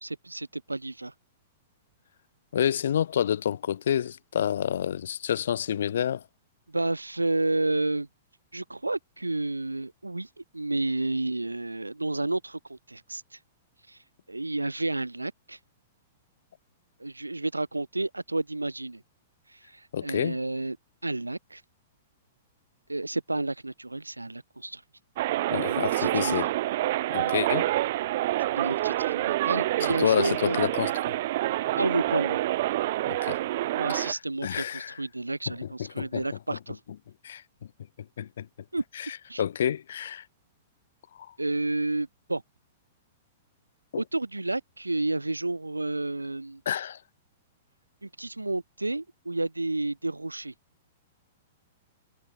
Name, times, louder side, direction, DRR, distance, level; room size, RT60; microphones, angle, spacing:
voice 1, 0.0-1.1 6.7-8.1 8.5-13.4 13.9-14.0 14.3-15.6 17.0-19.0 19.5-20.8 21.0-21.6 22.9-24.8 25.7-26.4 27.2-27.3 28.5-30.6 31.8-32.4 33.7-36.8 38.7-38.8 39.3-39.4 41.4-42.4 44.0-46.6 48.0-50.5, right 2 dB, 90° right, 1.9 m, -31 dB
voice 2, 2.5-6.2 19.9-20.4 25.5-26.5 27.1-27.7 29.8-31.1 33.0-33.4 33.9-35.0 35.5-35.7 36.0-36.2 36.5-36.6 37.2-37.4 38.2-38.5 39.0-40.2 41.2-41.3 43.9-44.0 46.7-47.0, left 9 dB, 65° left, 3.5 m, -29 dB
sound 1, 25.2-34.1, right 15 dB, 50° right, 3.6 m, -27 dB
figure-of-eight pair, 105°, 0 cm